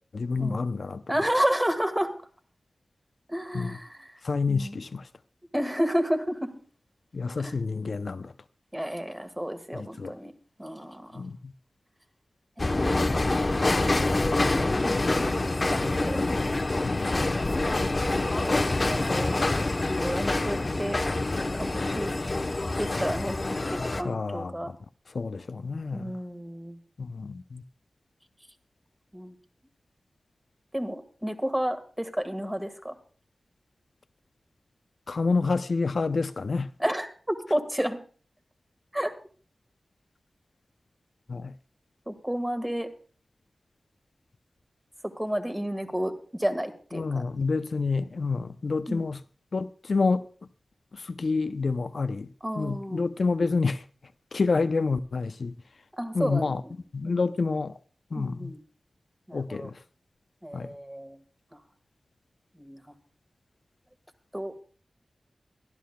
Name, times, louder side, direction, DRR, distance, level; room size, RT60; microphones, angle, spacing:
voice 1, 0.1-1.0 3.5-3.7 4.2-5.0 7.1-8.3 9.7-10.1 11.1-11.5 16.8-17.2 24.0-24.8 25.1-26.1 27.0-27.6 35.1-36.7 41.3-41.5 46.9-49.2 49.5-50.3 50.9-52.3 52.6-53.8 54.3-55.5 56.1-56.6 56.9-57.7 58.1-58.5 59.3-59.8 60.5-60.7, left 4 dB, 65° left, 0.5 m, -28 dB
voice 2, 1.1-2.1 3.3-4.2 4.5-4.8 5.5-6.5 7.4-7.5 8.7-10.3 10.6-11.2 12.6-13.0 14.4-16.2 17.5-17.7 18.1-18.5 18.8-19.3 19.7-21.0 21.5-22.1 22.8-24.7 25.9-26.8 29.1-29.3 30.7-32.9 36.8-38.0 38.9-39.1 42.1-42.9 45.0-47.2 48.9-49.1 52.4-53.1 56.0-56.7 57.0-57.2 58.1-58.6 59.3-59.7 60.4-61.2 61.5-61.6 62.6-62.9 64.3-64.5, equal, 10° right, 1.6 m, -31 dB
sound 1, 12.6-24.0, left 2 dB, 40° left, 0.9 m, -26 dB
22.5 x 12.5 x 2.2 m
wide cardioid pair, 90°, 0 cm